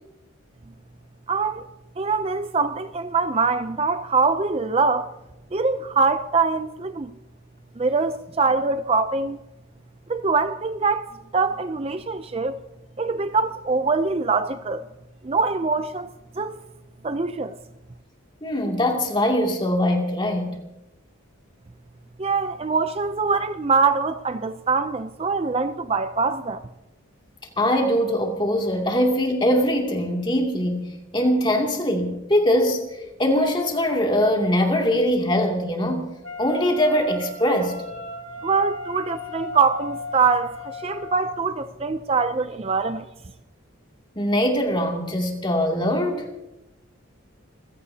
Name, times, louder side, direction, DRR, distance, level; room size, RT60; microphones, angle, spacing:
voice 1, 1.3-1.7 2.0-5.1 5.5-7.1 7.8-9.4 10.1-12.6 13.0-14.9 15.2-16.1 16.4-16.6 17.0-17.6 22.2-26.6 38.4-43.0, right 4 dB, 30° right, 0.5 m, -23 dB
voice 2, 18.4-20.6 27.6-32.8 33.2-36.1 36.4-37.8 44.2-46.3, equal, 20° left, 2.5 m, -22 dB
Wind instrument woodwind instrument, 36.2-41.5, left 3 dB, 60° left, 2.3 m, -36 dB
27.0 x 16.0 x 2.8 m
head